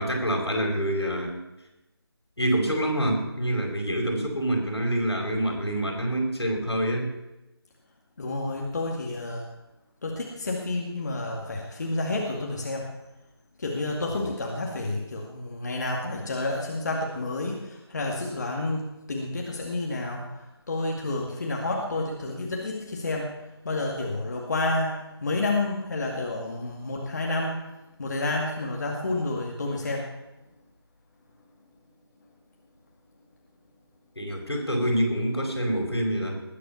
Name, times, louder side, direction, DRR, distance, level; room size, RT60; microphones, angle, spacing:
voice 1, 0.0-1.4 2.4-7.1 14.1-14.3 34.1-36.4, right 1 dB, 80° left, 2 dB, 5.0 m, -26 dB
voice 2, 8.2-9.4 10.0-12.9 13.6-23.4 23.6-27.7 28.0-30.1, left 2 dB, 40° left, -1 dB, 2.2 m, -30 dB
20.0 x 8.4 x 7.1 m, 0.98 s
figure-of-eight pair, 160°, 14 cm